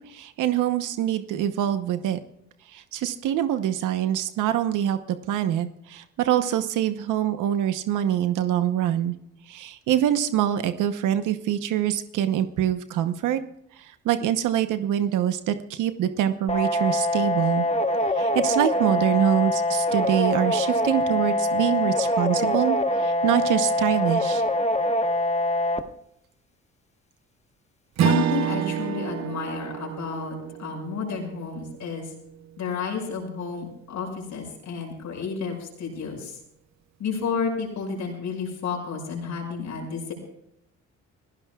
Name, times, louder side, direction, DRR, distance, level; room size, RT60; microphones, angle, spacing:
voice 1, 0.0-2.2 2.7-9.1 9.5-13.4 13.8-17.6 18.1-24.4, right 11 dB, 90° right, 9 dB, 1.0 m, -25 dB
sound 1, 16.5-25.8, left 1 dB, 20° left, 1.3 m, -24 dB
voice 2, 28.0-32.1 32.6-36.4 37.0-40.1, left 5 dB, 75° left, 1 dB, 6.5 m, -31 dB
Strum, 28.0-32.6, right 10 dB, 60° right, 0.6 m, -28 dB
28.0 x 16.0 x 2.4 m, 0.76 s
cardioid pair, 90°, 30 cm